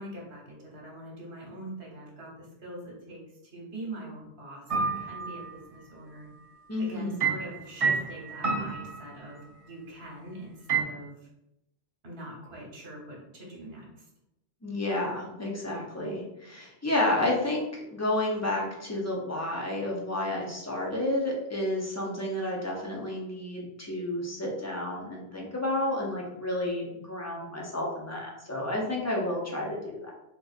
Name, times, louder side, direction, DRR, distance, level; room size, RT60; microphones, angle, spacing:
voice 1, 0.0-6.3 6.8-11.1 12.0-14.0, right 1 dB, 65° right, -2 dB, 1.2 m, -43 dB
sound 1, 4.7-5.5 7.2-9.6 10.7-10.8, right 5 dB, 45° right, 0.5 m, -29 dB
voice 2, 6.7-7.2 14.6-30.1, left 1 dB, 25° left, -2 dB, 0.4 m, -31 dB
3.7 x 2.7 x 2.4 m, 0.85 s
omnidirectional pair, 1.2 m